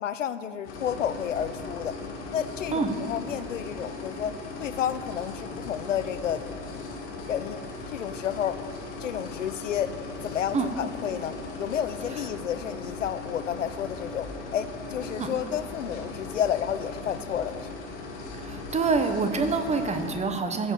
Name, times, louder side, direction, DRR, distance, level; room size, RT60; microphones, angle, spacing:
voice 1, 0.0-2.0 2.3-4.3 4.6-6.4 7.3-7.6 7.9-8.6 9.0-9.9 10.2-17.7, left 9 dB, 85° left, 13 dB, 0.6 m, -31 dB
sound 1, 0.6-20.2, left 3 dB, 65° left, 2.1 m, -38 dB
voice 2, 18.4-20.7, right 4 dB, 20° right, 8 dB, 1.0 m, -26 dB
15.0 x 7.1 x 3.7 m, 2.3 s
hypercardioid pair, 85°, 36 cm